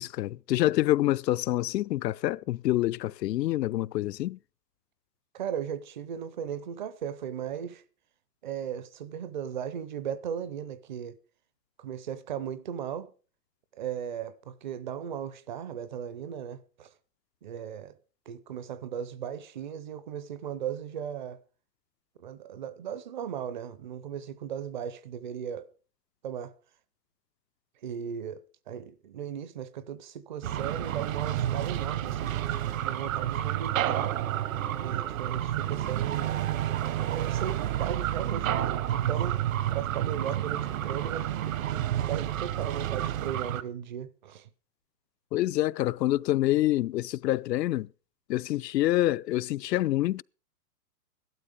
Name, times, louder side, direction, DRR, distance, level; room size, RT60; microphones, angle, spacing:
voice 1, 0.0-4.4 45.3-47.9 48.3-50.2, left 15 dB, 85° left, 0.5 m, -27 dB
voice 2, 5.3-7.8 8.4-11.2 11.8-13.1 13.7-16.9 17.4-18.0 18.3-21.4 22.2-25.7 26.2-26.5 27.8-28.4 28.7-32.4 32.8-34.1 34.8-36.4 37.1-39.4 39.7-44.5, right 8 dB, 30° right, 0.5 m, -37 dB
sound 1, 30.4-43.6, right 12 dB, 55° right, 1.0 m, -30 dB
13.5 x 12.0 x 5.0 m
hypercardioid pair, 155°, 48 cm